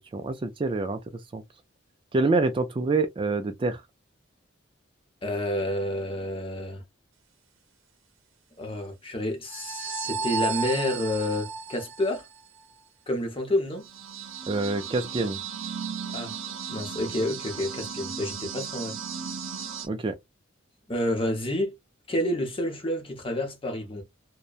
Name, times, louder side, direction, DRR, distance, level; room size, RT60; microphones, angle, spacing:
voice 1, 0.1-1.0 1.3-1.4 2.1-3.8 14.5-15.4 19.9-20.2, right 3 dB, 25° right, 0.3 m, -26 dB
voice 2, 5.2-6.8 8.6-12.2 13.1-13.9 16.1-16.3 16.7-19.0 20.9-21.7 22.1-24.0, left 1 dB, 30° left, 0.8 m, -29 dB
sound 1, 9.5-12.6 13.8-19.9, right 6 dB, 85° right, 0.6 m, -35 dB
2.8 x 2.1 x 2.3 m
head